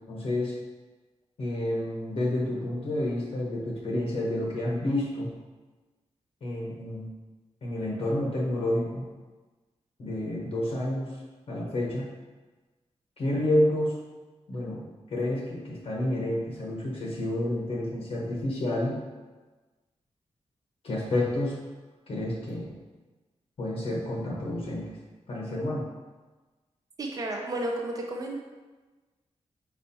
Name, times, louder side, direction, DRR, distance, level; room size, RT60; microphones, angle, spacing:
voice 1, 0.1-0.5 1.4-5.3 6.4-7.1 7.6-9.0 10.0-11.1 11.5-12.1 13.2-13.9 14.5-14.8 15.1-19.0 20.8-21.6 22.1-22.7 23.6-24.8 25.3-25.8, left 1 dB, 55° left, -3 dB, 0.9 m, -29 dB
voice 2, 27.0-28.4, right 1 dB, 30° right, 0 dB, 0.5 m, -32 dB
4.4 x 4.2 x 2.7 m, 1.3 s
wide cardioid pair, 170°, 12 cm